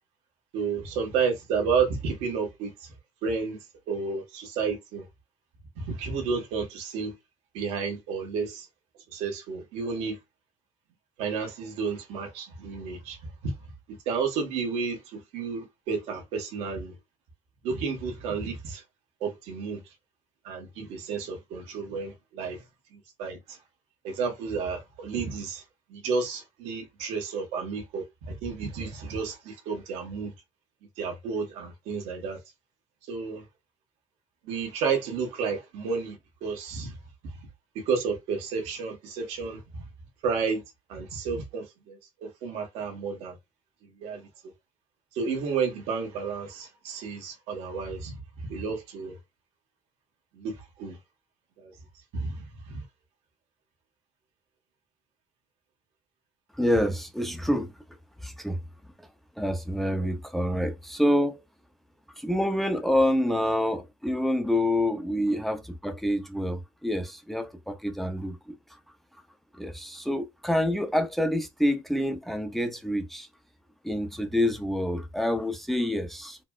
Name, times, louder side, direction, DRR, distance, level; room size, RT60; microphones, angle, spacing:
voice 1, 0.5-2.9 3.2-3.6 3.9-5.0 5.8-7.1 7.5-8.7 9.1-10.2 11.2-13.2 13.4-13.5 13.9-16.9 17.6-18.8 19.2-19.8 20.4-22.6 22.9-23.6 24.0-25.6 25.9-30.3 31.0-32.4 33.1-33.4 34.4-37.0 37.7-39.8 40.2-40.6 40.9-43.4 44.0-44.3 45.1-48.1 48.5-49.2 50.3-51.0 51.6-51.7 52.1-52.8, right 5 dB, 85° right, 1.1 m, -31 dB
voice 2, 56.6-57.7 58.2-58.6 59.4-61.4 62.2-68.5 69.5-73.3 73.8-76.4, left 1 dB, ahead, 0.4 m, -27 dB
4.1 x 2.0 x 2.2 m
cardioid pair, 135°, 10 cm